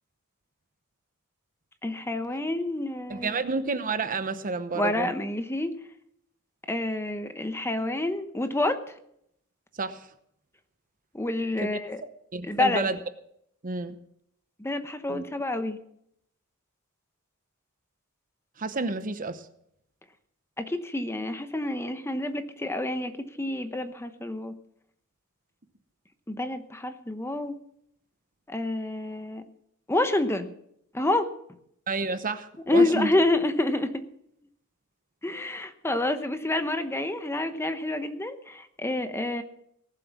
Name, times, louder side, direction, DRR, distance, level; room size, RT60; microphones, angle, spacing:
voice 1, 1.8-3.4 4.7-5.7 6.7-8.8 11.1-12.0 12.4-12.9 14.6-15.8 20.6-24.5 26.3-27.6 28.5-29.4 29.9-30.5 30.9-31.3 32.7-34.0 35.2-39.4, left 2 dB, 10° left, 9 dB, 0.9 m, -28 dB
voice 2, 3.1-5.1 9.8-10.1 12.0-13.0 13.6-14.0 15.1-15.2 18.6-19.5 31.9-33.1, right 3 dB, 40° right, 11 dB, 0.9 m, -30 dB
18.5 x 7.7 x 7.2 m, 0.72 s
head